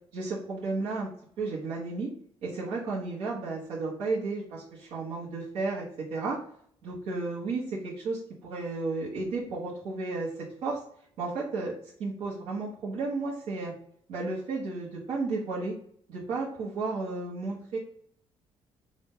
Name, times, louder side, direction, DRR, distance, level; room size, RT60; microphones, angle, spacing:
voice 1, 0.1-1.1 1.4-2.1 2.4-5.8 6.1-6.4 6.8-10.3 10.6-10.8 11.2-11.7 12.0-13.7 14.1-15.7 16.1-17.8, right 3 dB, 70° right, -8 dB, 1.3 m, -33 dB
4.2 x 2.7 x 3.8 m, 0.63 s
cardioid pair, 165°, 11 cm